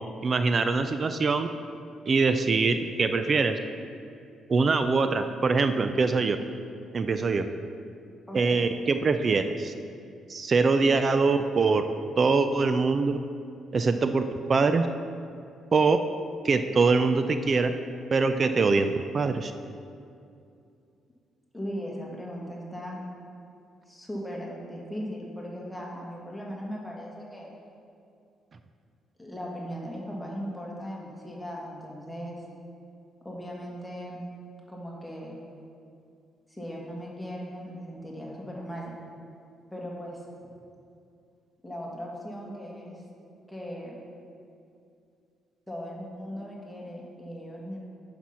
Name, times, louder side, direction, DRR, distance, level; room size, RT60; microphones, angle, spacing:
voice 1, 0.2-1.5 2.1-3.6 4.5-6.4 6.9-7.5 8.3-9.7 10.3-11.8 12.2-13.2 13.7-14.2 14.5-14.9 15.7-16.0 16.4-17.7 18.1-19.5, right 4 dB, 40° right, 9 dB, 0.4 m, -23 dB
voice 2, 8.3-8.6 21.5-23.0 23.9-27.5 29.2-32.4 33.2-34.2 34.7-35.4 36.5-38.9 39.7-40.5 41.6-43.0 43.5-44.0 45.7-47.8, equal, 5° left, -3 dB, 1.8 m, -38 dB
8.6 x 6.0 x 5.7 m, 2.5 s
cardioid pair, 90°, 0 cm